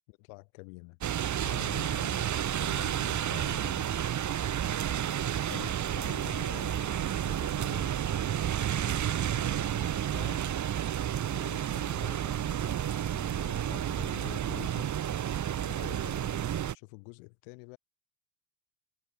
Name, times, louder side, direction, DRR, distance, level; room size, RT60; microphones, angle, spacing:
voice 1, 0.1-1.0 1.4-4.0 5.5-8.3 8.9-10.4 11.3-14.9 15.6-16.4 16.7-17.8, left 37 dB, 70° left, 6.4 m, -48 dB
sound 1, 1.0-16.7, right 10 dB, 35° right, 3.0 m, -31 dB
supercardioid pair, 105°, 50 cm